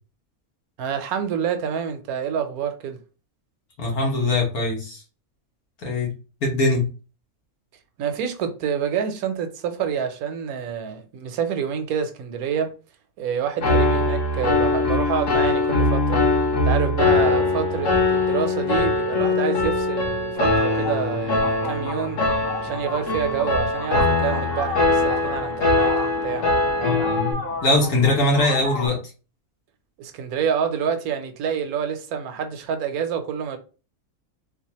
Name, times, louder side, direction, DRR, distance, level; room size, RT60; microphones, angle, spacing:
voice 1, 0.8-3.0 8.0-12.7 13.2-16.2 16.6-22.2 22.6-25.9 26.2-26.5 30.0-33.6, right 7 dB, 80° right, 1.1 m, -27 dB
voice 2, 3.8-5.0 5.8-6.1 6.4-6.9 26.8-29.0, left 2 dB, 80° left, 1.8 m, -22 dB
Piano, 13.6-27.3, left 2 dB, 60° left, 1.2 m, -22 dB
sound 1, 20.3-28.9, left 3 dB, 40° left, 1.9 m, -33 dB
3.9 x 2.4 x 2.8 m
omnidirectional pair, 1.6 m